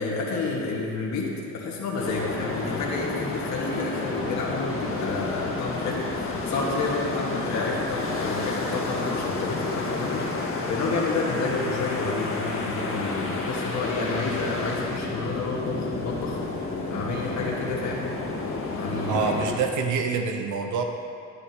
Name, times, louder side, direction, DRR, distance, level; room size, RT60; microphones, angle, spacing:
voice 1, 0.0-16.4 16.9-18.1 18.7-19.4, left 3 dB, 65° left, -4 dB, 1.6 m, -30 dB
sound 1, 2.0-19.5, left 3 dB, 45° left, 1.7 m, -30 dB
voice 2, 19.1-20.8, right 5 dB, 75° right, 4 dB, 0.8 m, -26 dB
11.0 x 9.9 x 2.9 m, 2.5 s
cardioid pair, 90°, 30 cm